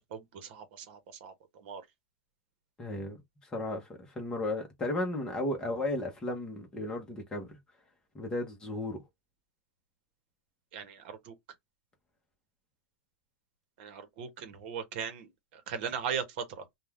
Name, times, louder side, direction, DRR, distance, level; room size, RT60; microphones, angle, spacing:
voice 1, 0.1-1.3 1.6-1.8 10.7-11.3 13.8-16.6, right 7 dB, 45° right, 1.0 m, -38 dB
voice 2, 2.8-3.2 3.5-7.6 8.1-9.0, left 1 dB, 10° left, 0.9 m, -34 dB
2.7 x 2.3 x 3.4 m
supercardioid pair, 165°, 8 cm